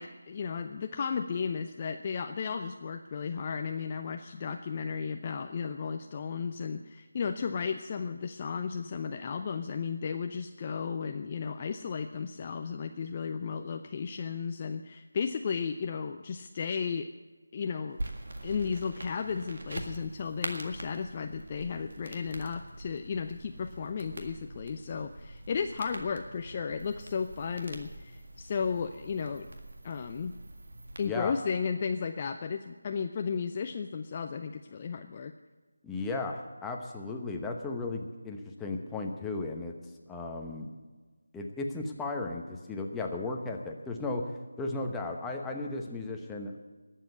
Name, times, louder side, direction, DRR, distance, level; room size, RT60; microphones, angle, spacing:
voice 1, 0.0-17.1 17.5-18.0 18.4-29.5 29.8-30.3 31.0-35.3, left 6 dB, 30° left, 6 dB, 0.5 m, -34 dB
sound 1, 18.0-31.1, right 1 dB, 55° right, 1.8 m, -44 dB
voice 2, 35.8-39.7 40.1-40.7 41.3-44.3 44.6-46.6, left 3 dB, 5° left, 0 dB, 1.0 m, -35 dB
19.5 x 7.5 x 8.0 m, 1.3 s
figure-of-eight pair, 160°, 0 cm